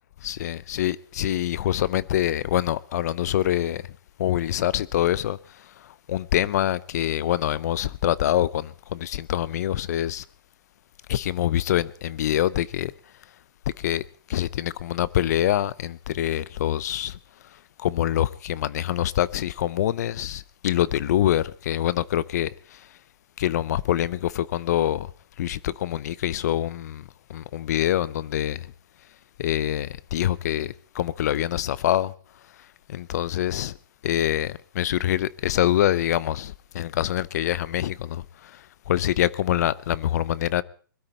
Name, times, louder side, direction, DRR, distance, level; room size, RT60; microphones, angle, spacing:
voice 1, 0.2-3.9 4.2-10.2 11.1-12.9 13.8-17.2 17.4-23.0 23.4-25.1 25.4-28.7 29.4-32.1 32.6-33.8 34.0-40.6, left 12 dB, 50° left, 0.6 m, -25 dB
21.5 x 12.5 x 4.2 m
hypercardioid pair, 150°, 12 cm